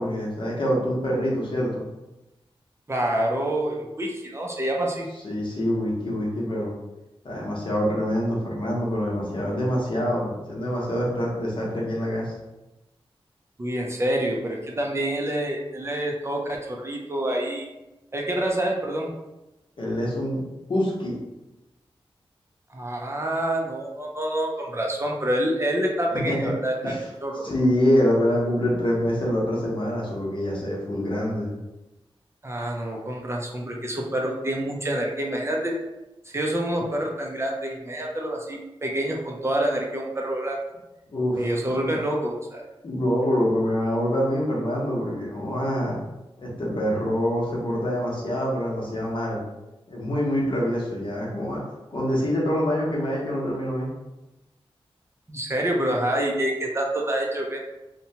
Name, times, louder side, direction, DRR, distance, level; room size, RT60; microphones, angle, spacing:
voice 1, 0.0-1.8 5.2-6.7 7.2-12.4 19.8-21.2 26.1-26.5 26.8-27.0 27.4-31.5 41.1-42.0 42.8-46.0 46.4-49.4 49.9-51.6 51.9-53.9, equal, 60° left, -4 dB, 0.8 m, -25 dB
voice 2, 2.9-5.1 13.6-17.7 18.1-19.1 22.7-26.9 27.2-27.5 32.4-35.7 36.3-40.6 41.4-42.6 55.3-57.6, right 1 dB, 25° right, -1 dB, 0.4 m, -27 dB
2.8 x 2.2 x 2.7 m, 0.99 s
wide cardioid pair, 100°, 10 cm